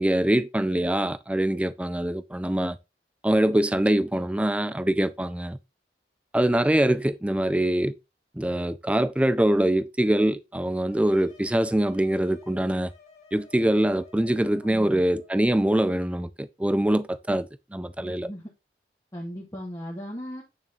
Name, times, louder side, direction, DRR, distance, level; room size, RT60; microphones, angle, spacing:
voice 1, 0.0-2.8 3.2-5.6 6.3-7.9 8.4-12.9 13.3-18.3, right 1 dB, 5° right, 0.4 m, -24 dB
sound 1, 10.9-15.4, left 4 dB, 35° left, 2.8 m, -54 dB
voice 2, 14.6-15.0 18.0-18.5 19.1-20.4, equal, 20° left, 1.6 m, -37 dB
9.0 x 6.6 x 3.0 m
head